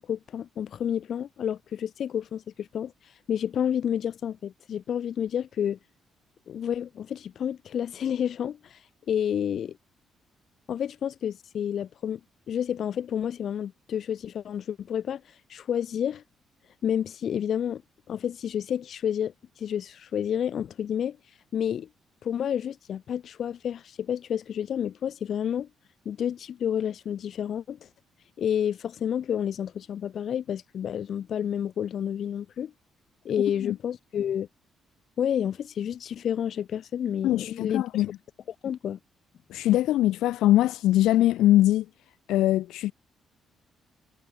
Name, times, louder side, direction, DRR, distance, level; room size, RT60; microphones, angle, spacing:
voice 1, 0.0-5.8 6.5-9.8 10.7-12.2 12.5-16.2 16.8-17.8 18.1-21.2 21.5-21.9 22.2-25.7 26.0-27.9 28.4-32.7 33.2-34.5 35.2-38.0 38.6-39.0, left 9 dB, 60° left, 1.0 m, -30 dB
voice 2, 37.2-38.1 39.5-41.9 42.3-42.9, left 14 dB, 85° left, 0.5 m, -22 dB
cardioid pair, 90°, 0 cm